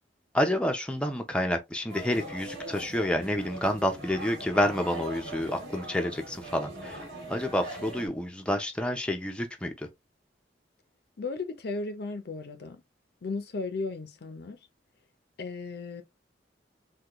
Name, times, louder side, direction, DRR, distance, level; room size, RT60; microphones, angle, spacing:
voice 1, 0.3-7.0 7.3-9.7, left 1 dB, 5° left, 0.5 m, -29 dB
sound 1, 1.9-8.1, right 1 dB, 75° right, 1.4 m, -41 dB
voice 2, 11.2-12.8 13.2-14.6 15.4-16.0, left 3 dB, 60° left, 0.5 m, -35 dB
3.6 x 2.2 x 2.9 m
head